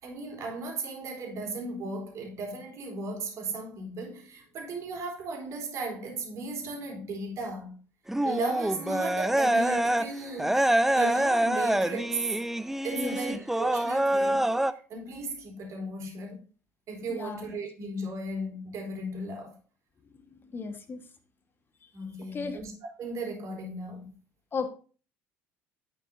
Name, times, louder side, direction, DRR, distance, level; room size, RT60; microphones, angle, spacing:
voice 1, 0.0-7.8 8.2-12.2 12.8-14.5 14.9-16.4 16.9-19.5 21.9-22.7 23.0-24.1, right 2 dB, 45° right, 3.8 m, -36 dB
sound 1, 8.1-10.1 10.4-14.7, right 1 dB, 5° right, 0.5 m, -26 dB
voice 2, 12.9-13.4 17.1-17.4 20.5-21.0 22.3-22.6 24.5-24.7, left 4 dB, 30° left, 1.6 m, -34 dB
11.0 x 9.1 x 2.8 m
figure-of-eight pair, 60°, 7 cm